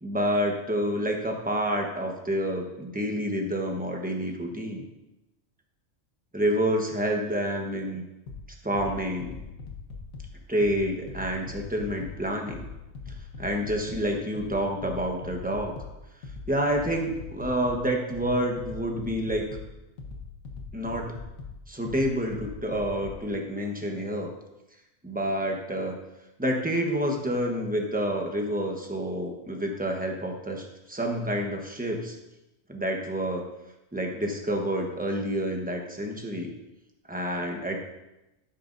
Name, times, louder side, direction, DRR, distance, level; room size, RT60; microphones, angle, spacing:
voice 1, 0.0-4.8 6.3-8.0 8.6-9.3 10.5-12.7 13.4-15.7 16.5-19.5 20.7-21.1 21.7-24.3 25.0-25.9 26.4-32.2 32.7-33.4 33.9-36.5 37.1-37.8, equal, 5° right, 1 dB, 1.0 m, -28 dB
sound 1, 8.3-23.3, left 4 dB, 85° left, 1.7 m, -42 dB
11.0 x 9.0 x 2.6 m, 0.96 s
omnidirectional pair, 1.4 m